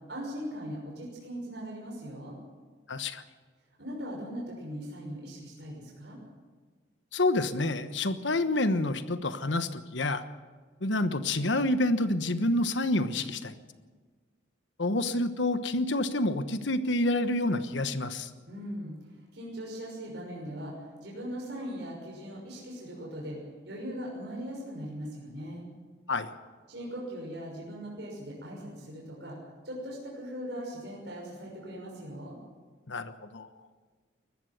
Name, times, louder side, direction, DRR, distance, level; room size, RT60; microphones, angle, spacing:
voice 1, 0.1-2.4 3.8-6.2 18.5-18.9 19.3-23.4 23.7-25.7 26.7-29.4 29.6-32.4, equal, 60° right, -3 dB, 6.0 m, -39 dB
voice 2, 2.9-3.2 7.1-10.2 10.8-13.5 14.8-18.3 26.1-26.3 32.9-33.5, left 2 dB, 70° left, 11 dB, 1.2 m, -28 dB
21.0 x 14.5 x 9.3 m, 1.5 s
head